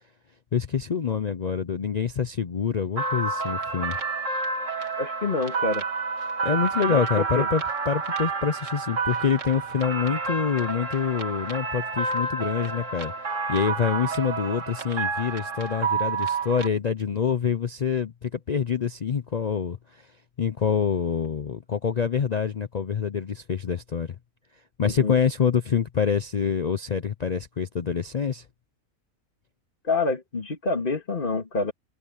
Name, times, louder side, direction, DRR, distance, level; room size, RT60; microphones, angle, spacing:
voice 1, 0.5-4.0 6.4-20.1 20.4-24.2 24.8-28.4, left 7 dB, 55° left, 0.4 m, -26 dB
sound 1, 3.0-16.7, right 4 dB, 60° right, 2.2 m, -29 dB
voice 2, 5.0-5.8 6.9-7.5 24.8-25.2 29.8-31.7, left 3 dB, 35° left, 2.4 m, -27 dB
omnidirectional pair, 1.5 m